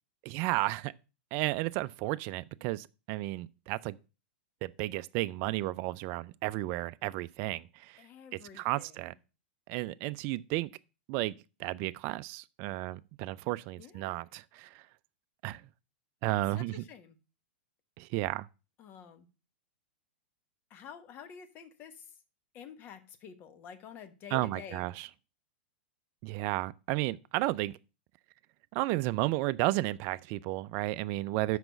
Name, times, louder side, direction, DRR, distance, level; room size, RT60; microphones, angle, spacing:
voice 1, 0.2-0.9 1.3-4.0 4.6-8.0 8.5-9.1 9.7-10.7 11.1-11.3 11.6-14.8 15.4-15.6 16.2-16.8 18.0-18.5 24.3-25.1 26.2-27.7 28.7-31.6, right 18 dB, 45° right, 0.4 m, -33 dB
voice 2, 8.0-9.0 13.8-14.1 16.3-17.2 18.8-19.3 20.7-22.1 22.5-24.9 31.5-31.6, left 7 dB, 35° left, 1.2 m, -49 dB
6.1 x 4.9 x 6.8 m
hypercardioid pair, 120°, 6 cm